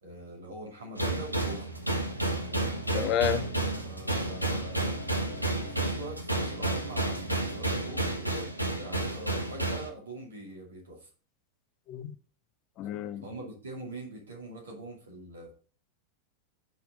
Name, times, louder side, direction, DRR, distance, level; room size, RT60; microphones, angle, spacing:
voice 1, 0.0-1.8 2.4-2.7 3.8-8.5 8.8-11.1 13.2-15.5, right 2 dB, 65° right, 2.5 m, -44 dB
sound 1, 1.0-9.9, right 2 dB, 90° left, 0.8 m, -31 dB
voice 2, 2.9-3.5 11.9-12.1 12.8-13.2, left 9 dB, 35° left, 0.5 m, -30 dB
5.3 x 4.8 x 5.0 m
figure-of-eight pair, 90°, 0 cm